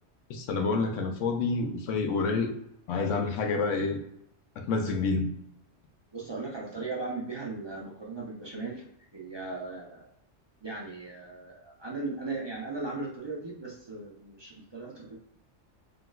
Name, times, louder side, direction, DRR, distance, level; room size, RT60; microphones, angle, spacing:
voice 1, 0.3-2.5 2.9-4.0 4.6-5.3, left 4 dB, 85° left, 3 dB, 1.0 m, -28 dB
voice 2, 6.1-10.1 10.6-15.2, right 3 dB, 40° right, -4 dB, 0.3 m, -37 dB
3.7 x 2.2 x 2.2 m, 0.75 s
omnidirectional pair, 1.3 m